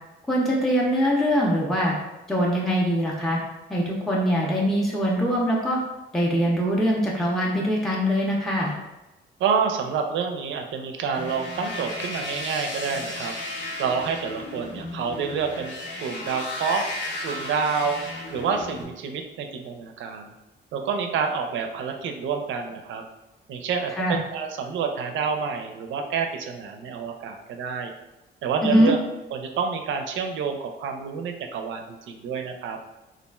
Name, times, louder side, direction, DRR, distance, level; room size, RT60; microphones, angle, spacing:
voice 1, 0.3-2.0 2.3-3.4 3.7-5.8 6.1-8.7 24.0-24.2 28.6-28.9, equal, ahead, -3 dB, 0.5 m, -22 dB
voice 2, 9.4-13.3 13.8-15.7 16.0-16.9 17.2-18.0 18.3-20.3 20.7-23.0 23.5-27.9 28.4-29.0 29.3-32.8, right 6 dB, 75° right, 4 dB, 0.4 m, -28 dB
sound 1, 11.1-18.8, left 2 dB, 65° left, 0.7 m, -34 dB
3.0 x 2.4 x 2.2 m, 1.0 s
cardioid pair, 90°, 20 cm